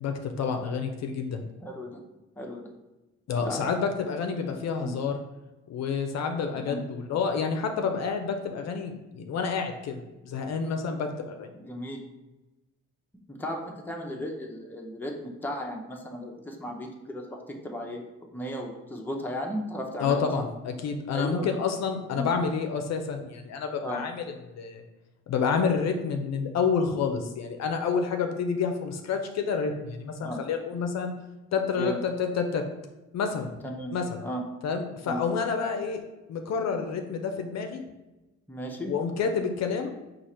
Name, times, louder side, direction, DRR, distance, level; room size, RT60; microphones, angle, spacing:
voice 1, 0.0-1.4 3.3-5.2 5.7-11.5 20.0-24.8 25.3-31.1 31.5-32.7 33.1-33.5 33.9-34.2 34.6-37.8 38.9-39.9, left 5 dB, 60° left, 5 dB, 0.5 m, -29 dB
voice 2, 1.6-2.0 2.4-2.7 3.4-3.8 4.8-4.9 6.5-6.8 11.5-12.0 13.3-18.1 18.3-20.4 21.1-21.5 22.1-22.3 23.8-24.0 30.2-30.4 31.7-32.0 33.6-33.9 34.2-34.4 35.0-35.2 38.5-38.9, equal, 5° left, 0 dB, 0.7 m, -35 dB
4.7 x 2.5 x 4.2 m, 1.1 s
cardioid pair, 90°, 30 cm